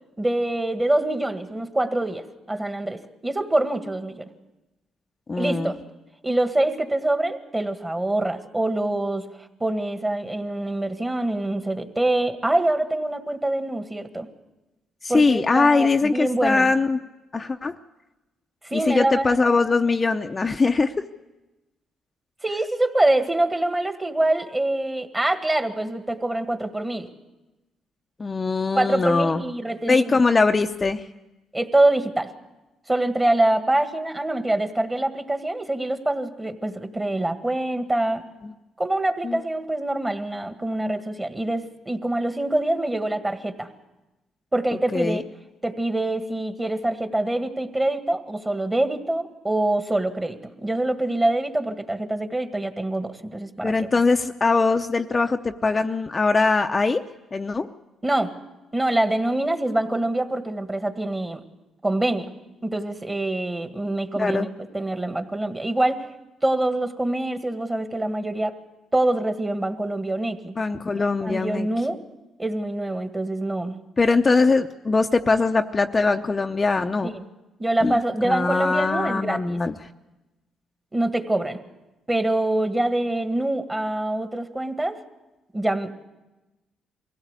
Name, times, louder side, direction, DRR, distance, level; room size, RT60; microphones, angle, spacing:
voice 1, 0.2-4.3 5.4-5.8 6.2-9.2 9.6-14.3 15.1-16.7 18.6-19.4 22.4-27.1 28.7-30.2 31.5-32.3 32.9-38.2 38.8-43.7 44.5-45.2 45.6-53.9 58.0-58.3 58.7-61.4 61.8-62.3 62.6-66.1 66.4-68.5 68.9-70.6 70.9-72.0 72.4-73.7 77.0-77.3 77.6-79.6 80.9-81.6 82.1-85.0 85.5-85.9, right 1 dB, 15° right, 7 dB, 1.8 m, -25 dB
voice 2, 5.3-5.7 15.0-17.0 17.3-17.7 18.7-21.1 28.2-29.4 29.9-31.0 38.4-38.5 39.2-39.4 44.9-45.2 53.6-57.0 57.3-57.7 64.2-64.5 70.6-71.7 74.0-77.1 77.8-79.7, left 3 dB, 30° left, 5 dB, 0.7 m, -21 dB
23.5 x 16.5 x 8.2 m, 1.1 s
cardioid pair, 90°, 0 cm